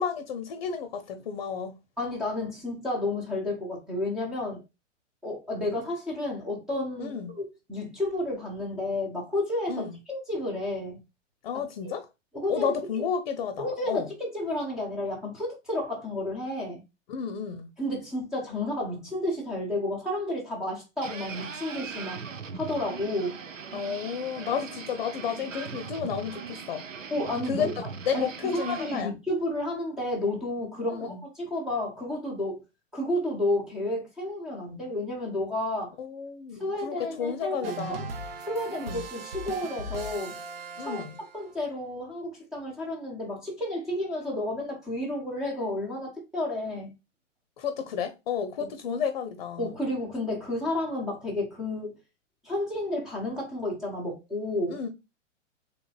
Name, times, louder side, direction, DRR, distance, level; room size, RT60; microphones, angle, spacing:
voice 1, 0.0-1.8 7.0-7.4 9.7-10.0 11.4-12.1 12.5-14.1 17.1-17.7 23.7-26.8 27.5-29.1 30.9-31.2 36.0-38.0 38.7-39.0 40.8-41.2 47.6-49.7 54.7-54.9, left 7 dB, 40° left, 0.6 m, -32 dB
voice 2, 2.0-4.6 5.2-11.0 12.3-13.1 13.6-16.8 17.8-22.2 22.5-23.4 27.1-27.7 28.1-28.2 28.5-32.6 32.9-35.9 36.6-38.0 38.4-40.4 40.8-41.0 41.3-46.9 48.6-48.7 49.6-52.0 52.4-54.8, left 1 dB, ahead, 0.4 m, -31 dB
sound 1, 21.0-29.0, right 6 dB, 85° right, 0.5 m, -40 dB
sound 2, 37.6-41.5, right 3 dB, 50° right, 0.7 m, -38 dB
3.8 x 3.3 x 2.3 m
figure-of-eight pair, 110°, 37 cm